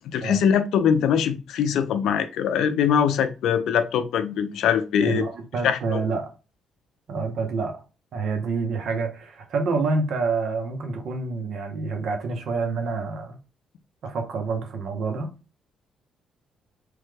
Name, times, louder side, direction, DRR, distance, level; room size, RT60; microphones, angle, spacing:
voice 1, 0.1-5.2 5.6-6.0, left 8 dB, 80° left, 0.4 m, -22 dB
voice 2, 5.0-6.3 7.1-7.8 8.1-13.4 14.0-15.3, right 4 dB, 70° right, 0.7 m, -27 dB
3.1 x 2.2 x 3.2 m
cardioid pair, 90°, 0 cm